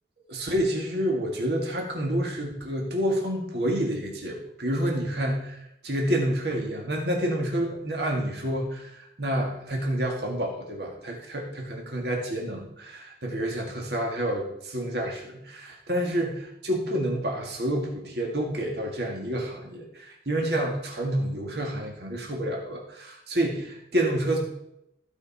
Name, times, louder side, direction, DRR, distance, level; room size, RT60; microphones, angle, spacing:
voice 1, 0.3-24.4, right 1 dB, 65° right, 0 dB, 2.2 m, -29 dB
15.0 x 5.5 x 4.3 m, 0.78 s
head